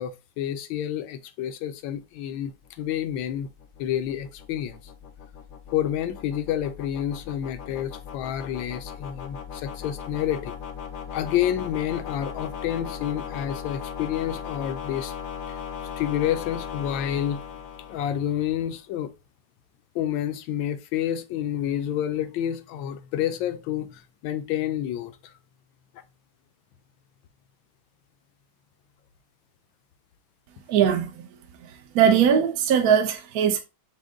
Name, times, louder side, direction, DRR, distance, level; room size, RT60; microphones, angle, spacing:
voice 1, 0.0-3.5 3.8-4.8 5.7-10.6 11.1-15.1 15.5-15.6 15.9-17.4 17.9-19.1 19.9-25.3, left 10 dB, 80° left, 1.3 m, -29 dB
sound 1, 2.5-18.7, left 7 dB, 65° left, 0.8 m, -38 dB
voice 2, 30.7-31.3 31.6-33.6, right 8 dB, 70° right, 0.9 m, -21 dB
6.2 x 2.2 x 3.6 m
omnidirectional pair, 2.1 m